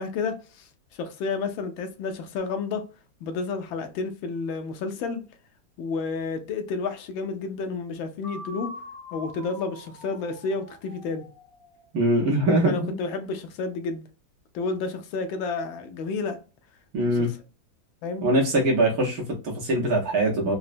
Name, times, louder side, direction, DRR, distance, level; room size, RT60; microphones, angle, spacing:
voice 1, 0.0-2.9 3.2-5.2 5.8-8.7 9.1-11.3 12.6-14.0 14.5-16.4 17.1-17.3 18.0-18.3, left 4 dB, 80° left, 1.3 m, -31 dB
sound 1, 8.2-12.1, left 1 dB, 50° left, 1.5 m, -43 dB
voice 2, 11.9-13.0 16.9-17.3 18.2-20.6, right 1 dB, 60° right, 1.0 m, -22 dB
3.9 x 2.0 x 2.5 m
omnidirectional pair, 2.2 m